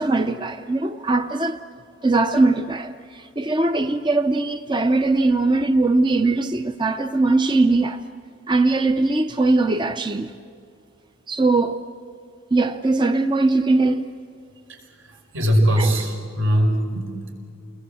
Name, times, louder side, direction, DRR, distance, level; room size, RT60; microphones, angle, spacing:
voice 1, 0.0-1.6 2.0-8.0 8.5-10.3 11.3-11.8 12.5-14.1 15.8-15.9, right 2 dB, 25° right, 0.6 m, -20 dB
voice 2, 15.0-17.3, equal, 80° right, 5.6 m, -21 dB
29.5 x 21.5 x 7.8 m
head